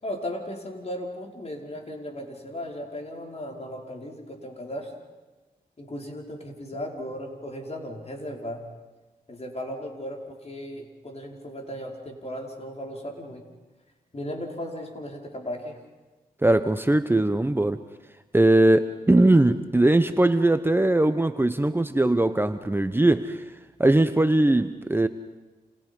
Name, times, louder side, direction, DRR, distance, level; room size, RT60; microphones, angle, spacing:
voice 1, 0.0-4.9 5.8-8.7 9.3-13.4 14.1-15.8, equal, 40° left, 1 dB, 5.3 m, -36 dB
voice 2, 16.4-17.8 18.3-23.4 23.8-25.1, right 1 dB, 15° right, 10 dB, 1.0 m, -20 dB
29.5 x 29.0 x 5.5 m, 1.2 s
cardioid pair, 60°, 16 cm